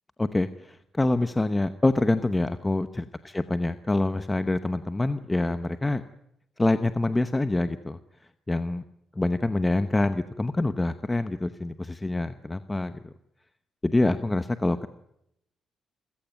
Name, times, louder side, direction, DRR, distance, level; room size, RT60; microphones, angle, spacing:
voice 1, 0.2-6.0 6.6-8.0 8.5-8.8 9.2-13.1 13.8-14.9, left 2 dB, 15° left, 11 dB, 0.9 m, -26 dB
28.0 x 16.0 x 9.3 m, 0.80 s
cardioid pair, 130°, 0 cm